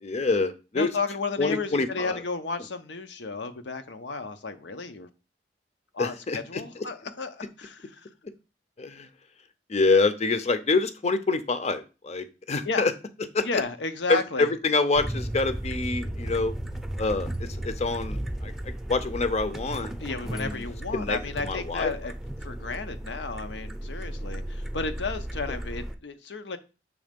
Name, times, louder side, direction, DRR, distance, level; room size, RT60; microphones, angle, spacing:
voice 1, 0.0-0.9 1.4-2.2 6.0-6.6 8.8-9.1 9.7-12.9 13.3-13.4 14.1-16.5 17.0-19.9 20.3-20.6 20.9-21.9, left 3 dB, 40° left, 0.6 m, -26 dB
voice 2, 0.7-5.1 5.9-8.1 12.6-12.9 13.4-14.5 20.0-22.1 22.4-26.6, left 4 dB, 90° left, 0.8 m, -33 dB
sound 1, 14.9-25.9, right 1 dB, ahead, 0.5 m, -35 dB
6.3 x 3.2 x 5.1 m
head